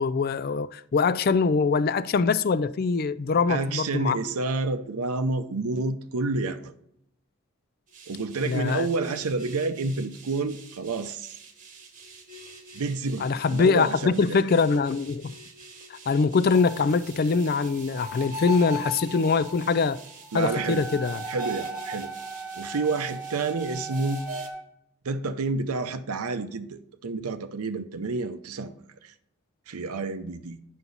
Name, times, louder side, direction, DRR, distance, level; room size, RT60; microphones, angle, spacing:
voice 1, 0.0-4.2 8.4-8.9 13.2-15.3 15.9-20.0 20.3-21.2, left 4 dB, 45° left, 0.3 m, -23 dB
voice 2, 3.5-6.7 8.1-11.3 12.7-14.4 20.3-20.8 21.3-22.1 22.6-24.2 25.0-28.8 29.0-29.1 29.7-30.6, right 3 dB, 85° right, 0.6 m, -29 dB
sound 1, 7.9-24.5, right 1 dB, 35° right, 1.1 m, -41 dB
Wind instrument woodwind instrument, 20.4-24.6, right 3 dB, 5° right, 0.9 m, -38 dB
9.5 x 5.9 x 4.0 m
head